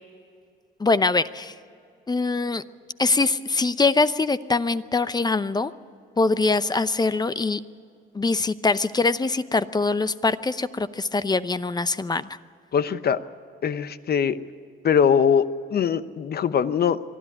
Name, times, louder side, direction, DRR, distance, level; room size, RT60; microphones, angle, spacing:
voice 1, 0.8-1.5 2.1-2.6 3.0-5.7 6.2-7.6 8.1-12.3, left 3 dB, 20° left, 14 dB, 0.7 m, -23 dB
voice 2, 12.7-13.2 13.6-14.4 14.8-17.0, left 7 dB, 50° left, 13 dB, 0.9 m, -22 dB
23.5 x 13.0 x 9.8 m, 2.3 s
cardioid pair, 90°, 20 cm